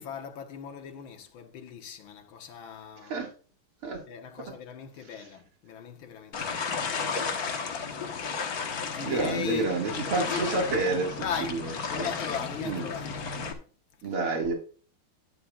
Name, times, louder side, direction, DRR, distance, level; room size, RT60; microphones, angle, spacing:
voice 1, 0.0-3.2 4.1-7.4 8.8-10.5 11.2-13.1, left 8 dB, 65° left, 1.9 m, -38 dB
sound 1, 6.3-13.5, left 5 dB, 50° left, 1.5 m, -33 dB
voice 2, 9.0-11.2 11.5-11.7 12.0-12.1 12.6-12.9 14.0-14.5, right 3 dB, 80° right, 2.8 m, -29 dB
11.5 x 9.8 x 2.3 m
omnidirectional pair, 2.4 m